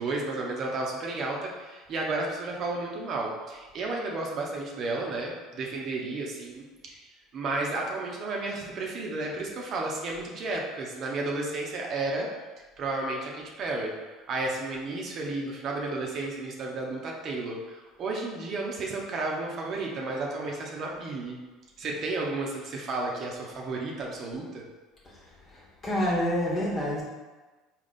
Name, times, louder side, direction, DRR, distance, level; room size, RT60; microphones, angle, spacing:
voice 1, 0.0-7.0 7.3-12.3 12.8-13.9 14.3-21.4 21.8-24.7, right 2 dB, 50° right, -1 dB, 0.8 m, -32 dB
voice 2, 25.5-27.0, equal, 30° left, -4 dB, 1.2 m, -28 dB
3.5 x 2.4 x 4.0 m, 1.3 s
hypercardioid pair, 75°, 0 cm